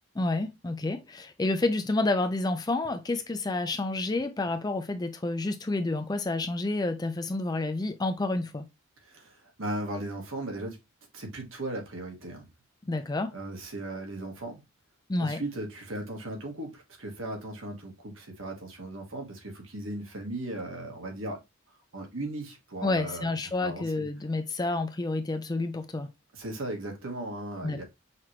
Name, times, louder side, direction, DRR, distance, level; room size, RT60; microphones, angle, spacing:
voice 1, 0.2-8.7 12.8-13.4 15.1-15.4 22.8-26.1 27.6-27.8, left 2 dB, 20° left, 0.4 m, -29 dB
voice 2, 9.0-10.8 11.1-12.5 13.3-14.6 15.2-21.4 21.9-23.3 23.6-24.1 26.3-27.8, right 1 dB, 65° right, 1.4 m, -37 dB
5.7 x 3.0 x 3.1 m
head